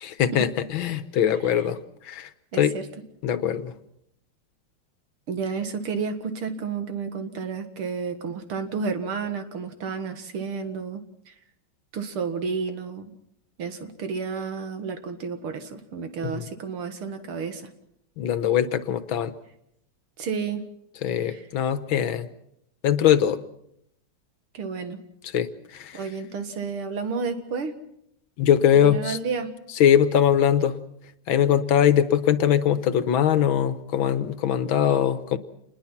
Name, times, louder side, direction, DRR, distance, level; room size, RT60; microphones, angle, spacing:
voice 1, 0.0-1.8 2.0-2.3 2.6-2.8 3.2-3.7 16.3-16.5 18.2-19.3 21.0-22.3 22.8-23.4 25.3-26.0 28.4-29.2 29.8-30.8 31.3-35.4, left 9 dB, 70° left, 12 dB, 1.8 m, -21 dB
voice 2, 2.5-2.9 5.3-11.3 11.9-13.1 13.6-17.7 20.2-20.6 21.2-21.5 24.5-25.0 25.9-27.8 28.7-29.5, right 5 dB, 85° right, 8 dB, 2.6 m, -31 dB
27.0 x 21.0 x 5.9 m, 0.76 s
omnidirectional pair, 2.3 m